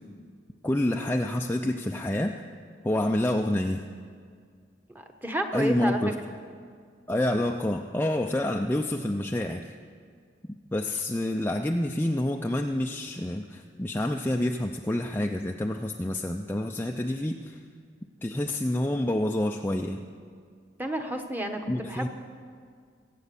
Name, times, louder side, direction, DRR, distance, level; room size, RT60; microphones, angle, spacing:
voice 1, 0.6-2.4 2.8-3.9 5.5-6.1 7.1-9.8 10.7-17.6 18.2-20.1 21.7-22.1, left 1 dB, 10° left, 3 dB, 0.4 m, -28 dB
voice 2, 4.9-6.0 6.3-6.4 20.8-22.1, right 1 dB, 10° right, 4 dB, 1.1 m, -31 dB
22.5 x 8.4 x 7.0 m, 2.1 s
head